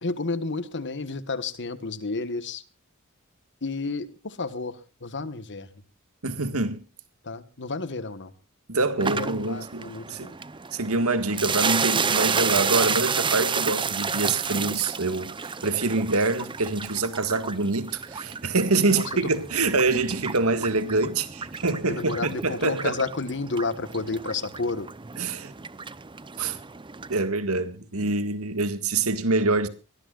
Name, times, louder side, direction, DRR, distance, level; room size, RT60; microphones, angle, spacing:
voice 1, 0.0-2.6 3.6-5.7 7.2-8.3 9.0-10.4 18.7-19.3 21.8-24.9 28.0-28.1, left 3 dB, 55° left, 1.5 m, -31 dB
voice 2, 6.2-6.8 8.7-9.8 10.1-10.3 10.7-23.0 25.2-25.5 26.4-26.6 27.1-29.7, right 3 dB, 75° right, 1.8 m, -25 dB
sound 1, 9.0-27.2, right 5 dB, 25° right, 0.7 m, -31 dB
23.5 x 18.5 x 2.5 m
head